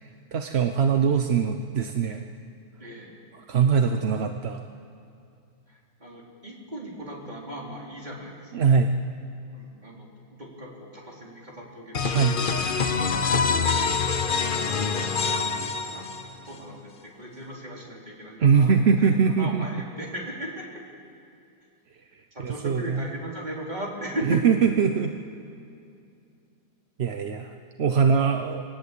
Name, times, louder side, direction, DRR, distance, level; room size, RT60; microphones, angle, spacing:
voice 1, 0.0-2.2 3.4-4.6 8.5-9.0 12.1-12.4 18.4-19.8 22.4-23.0 24.3-25.1 27.0-28.6, right 6 dB, 50° right, 6 dB, 0.9 m, -22 dB
voice 2, 2.8-3.2 5.7-8.6 9.5-10.1 10.4-12.4 14.0-16.1 16.4-20.7 22.3-24.4, right 1 dB, 25° right, -3 dB, 4.0 m, -38 dB
sound 1, 11.9-16.5, left 5 dB, 40° left, 0.8 m, -25 dB
25.0 x 19.0 x 8.4 m, 2.5 s
omnidirectional pair, 1.8 m